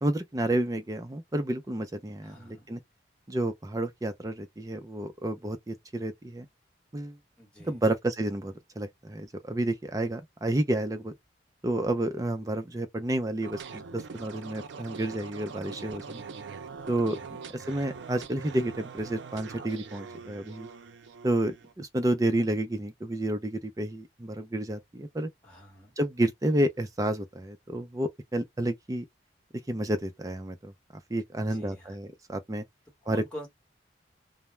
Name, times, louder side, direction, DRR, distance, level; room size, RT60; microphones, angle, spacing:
voice 1, 0.0-2.8 3.3-6.5 6.9-7.2 7.6-11.1 11.6-16.2 16.9-17.2 17.5-20.7 21.2-25.3 26.0-29.0 29.7-30.7 31.1-32.6 33.1-33.2, right 1 dB, 20° right, 0.4 m, -30 dB
voice 2, 2.2-2.7 7.4-7.8 16.8-17.3 25.4-25.9 31.3-32.0 33.0-33.5, equal, 5° left, 1.1 m, -46 dB
sound 1, 13.4-21.7, right 5 dB, 80° right, 0.5 m, -43 dB
2.2 x 2.0 x 3.0 m
head